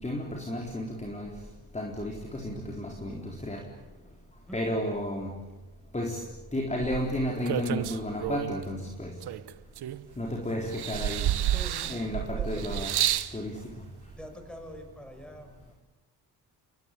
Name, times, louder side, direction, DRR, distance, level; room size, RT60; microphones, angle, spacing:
voice 1, 0.0-1.4 1.7-3.7 4.5-5.4 5.9-6.3 6.5-9.2 10.2-11.3 11.9-13.0 13.3-13.7, left 1 dB, 15° left, 1 dB, 4.0 m, -33 dB
sound 1, 6.8-8.6 9.2-10.3 10.7-13.3 14.2-14.3, right 12 dB, 75° right, 1.1 m, -30 dB
voice 2, 11.5-12.7 14.2-15.8, equal, ahead, 4 dB, 7.1 m, -45 dB
29.5 x 23.0 x 8.5 m, 1.1 s
cardioid pair, 95°, 39 cm